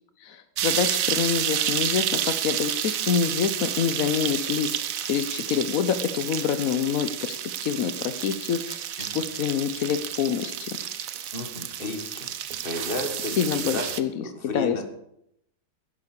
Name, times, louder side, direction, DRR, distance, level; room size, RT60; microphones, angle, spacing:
voice 1, 0.2-10.8 13.2-14.8, left 8 dB, 75° left, 10 dB, 0.7 m, -27 dB
sound 1, 0.6-14.0, right 10 dB, 90° right, 0.7 m, -30 dB
voice 2, 11.3-12.3 12.6-13.8 14.2-14.8, left 2 dB, 25° left, 5 dB, 1.8 m, -33 dB
11.0 x 10.5 x 6.8 m, 0.77 s
omnidirectional pair, 2.4 m